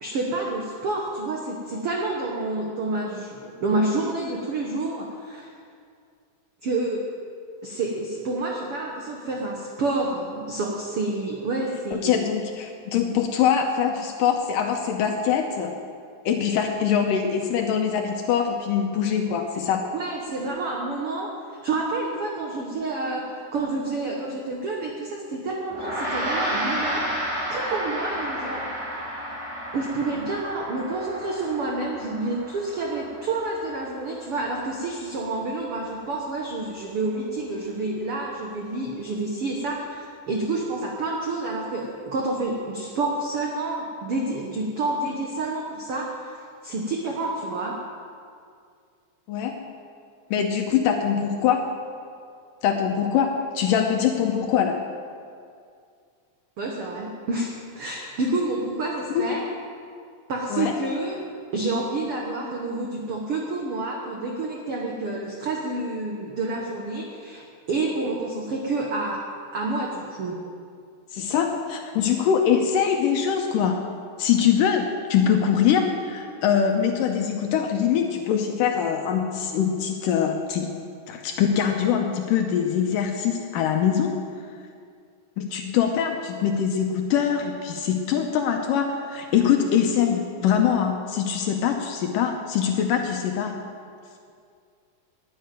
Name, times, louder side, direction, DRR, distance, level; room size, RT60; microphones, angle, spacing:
voice 1, 0.0-5.5 6.6-7.0 7.6-12.2 19.9-21.3 21.6-27.0 27.5-28.6 29.7-46.4 46.6-47.8 56.6-57.5 57.8-59.4 60.3-61.2 61.5-69.2 69.5-70.4, right 2 dB, 60° right, -1 dB, 1.6 m, -28 dB
voice 2, 11.9-15.7 16.3-19.8 49.3-49.7 50.3-51.6 52.6-54.8 59.1-59.2 60.5-60.8 71.1-80.7 81.1-84.1 85.4-93.5, left 8 dB, 75° left, 3 dB, 2.3 m, -23 dB
Gong, 25.7-35.3, equal, 75° right, 6.2 m, -32 dB
11.0 x 10.5 x 9.1 m, 2.3 s
omnidirectional pair, 4.2 m